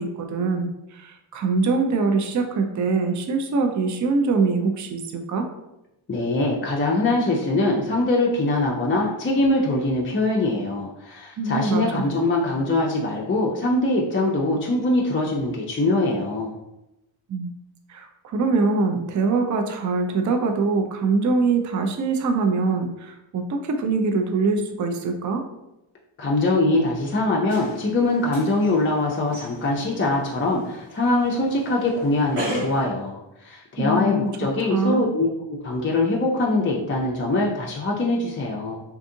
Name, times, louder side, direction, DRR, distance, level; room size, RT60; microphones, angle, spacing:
voice 1, 0.0-5.5 11.4-12.1 17.3-17.5 17.9-25.4 33.8-34.3 34.6-35.0, right 3 dB, 40° right, 5 dB, 0.4 m, -23 dB
voice 2, 6.1-16.5 26.2-35.3 35.6-38.8, left 2 dB, 25° left, -3 dB, 0.4 m, -23 dB
sound 1, 27.5-32.8, equal, 90° right, 0.9 m, -36 dB
2.6 x 2.5 x 2.6 m, 0.91 s
cardioid pair, 45°, 50 cm